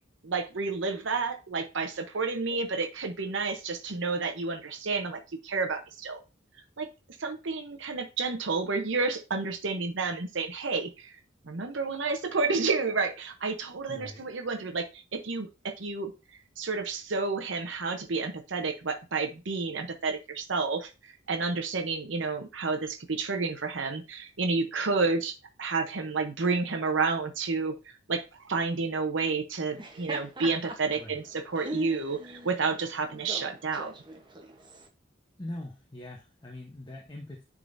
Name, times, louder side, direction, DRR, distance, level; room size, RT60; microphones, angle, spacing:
voice 1, 0.2-6.2 6.8-6.9 7.2-11.2 11.4-16.1 16.6-25.3 25.6-33.9, right 4 dB, 70° right, 4 dB, 0.8 m, -30 dB
voice 2, 13.9-14.2 31.0-31.2 35.4-37.4, left 1 dB, 25° left, 0 dB, 0.8 m, -42 dB
Laughter, 29.6-34.9, right 2 dB, 25° right, 0.8 m, -41 dB
10.0 x 3.7 x 2.6 m, 0.28 s
head